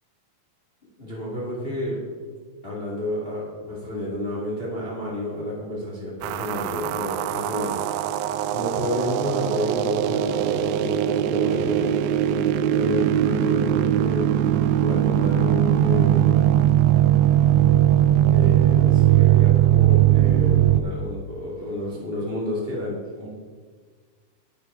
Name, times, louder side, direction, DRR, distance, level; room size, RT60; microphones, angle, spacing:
voice 1, 1.0-2.0 2.6-7.8 8.5-11.9 12.7-16.4 18.3-23.3, left 1 dB, 75° left, -5 dB, 0.5 m, -30 dB
sound 1, 6.2-20.8, right 12 dB, 85° right, 2.5 m, -20 dB
9.6 x 8.5 x 5.4 m, 1.5 s
omnidirectional pair, 5.0 m